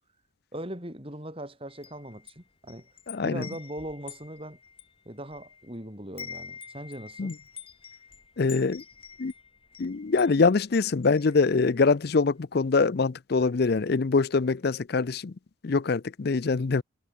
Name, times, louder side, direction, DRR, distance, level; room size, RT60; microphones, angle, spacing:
voice 1, 0.5-2.9 3.2-4.6 5.0-7.4, right 1 dB, 30° right, 6.5 m, -39 dB
Wind chime, 1.7-5.8 6.0-12.0, left 7 dB, 30° left, 4.4 m, -47 dB
voice 2, 3.1-3.4 7.2-7.3 8.4-8.8 9.2-9.3 9.8-15.3 15.6-16.8, left 4 dB, 55° left, 0.5 m, -24 dB
head